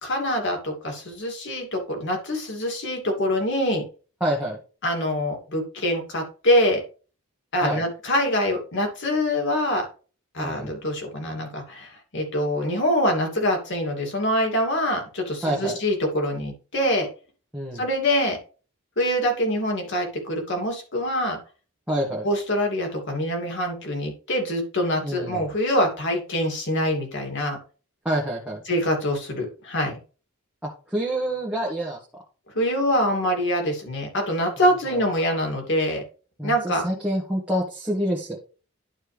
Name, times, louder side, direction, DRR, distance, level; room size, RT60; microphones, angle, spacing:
voice 1, 0.0-3.8 4.8-6.8 7.5-9.9 10.3-17.1 17.7-18.4 19.0-21.4 22.2-27.6 28.7-30.0 32.5-36.0 36.4-36.8, equal, 55° left, 2 dB, 2.6 m, -24 dB
voice 2, 4.2-4.6 7.6-7.8 10.4-10.7 15.4-15.8 17.5-17.8 21.9-22.3 25.0-25.4 28.0-28.6 30.6-32.0 34.9-35.0 36.4-38.4, right 1 dB, 5° right, -4 dB, 1.5 m, -27 dB
11.5 x 4.4 x 3.4 m, 0.36 s
head